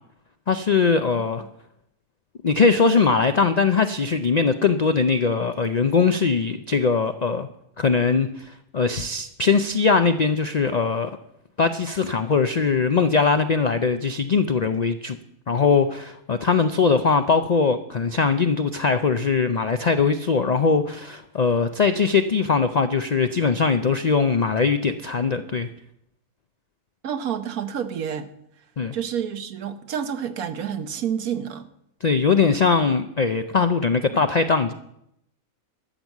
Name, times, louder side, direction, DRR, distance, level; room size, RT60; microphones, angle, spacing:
voice 1, 0.5-1.4 2.4-7.5 7.8-11.1 11.6-15.2 15.5-25.7 28.8-28.9 32.0-34.7, left 5 dB, 75° left, 0.3 m, -21 dB
voice 2, 27.0-28.3 28.9-31.7, right 8 dB, 80° right, 1.4 m, -29 dB
13.0 x 8.0 x 7.2 m
omnidirectional pair, 1.5 m